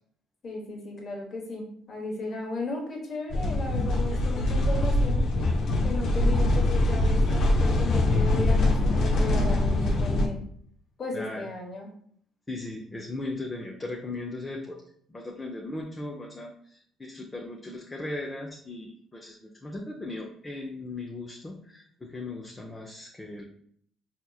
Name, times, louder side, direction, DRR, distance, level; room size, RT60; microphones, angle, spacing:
voice 1, 0.4-5.3 5.8-10.4 11.0-11.9, left 2 dB, 50° left, 0 dB, 1.2 m, -35 dB
sound 1, 3.3-10.3, left 1 dB, 65° left, 0.5 m, -23 dB
voice 2, 11.1-11.5 12.5-14.8 15.1-23.4, left 2 dB, 25° left, 0 dB, 0.6 m, -37 dB
4.3 x 2.9 x 2.3 m, 0.63 s
supercardioid pair, 65°, 0 cm